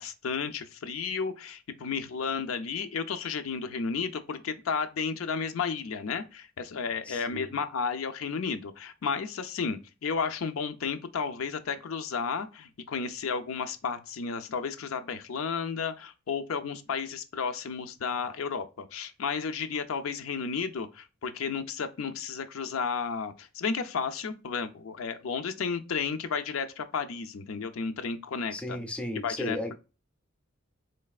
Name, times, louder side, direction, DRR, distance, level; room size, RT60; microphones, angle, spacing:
voice 1, 0.0-28.8 29.2-29.7, left 5 dB, 80° left, 0.5 m, -33 dB
voice 2, 7.1-7.5 28.5-29.7, left 1 dB, 5° left, 0.5 m, -35 dB
3.9 x 3.2 x 2.3 m
head